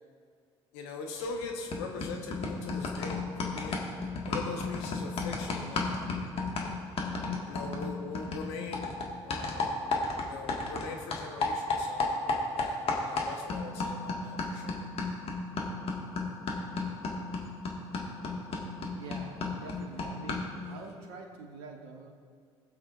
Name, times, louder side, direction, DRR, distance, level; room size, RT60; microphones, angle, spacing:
voice 1, 0.7-3.8 4.3-6.0 7.5-8.9 9.2-9.7 10.2-12.1 12.6-14.8, left 4 dB, 70° left, 2 dB, 1.1 m, -41 dB
sound 1, 1.2-1.4 1.7-10.9 11.1-20.6, left 3 dB, 40° left, 1.7 m, -34 dB
voice 2, 18.9-22.1, right 4 dB, 70° right, 3 dB, 1.1 m, -45 dB
20.5 x 7.3 x 2.5 m, 2.1 s
figure-of-eight pair, 55°, 14 cm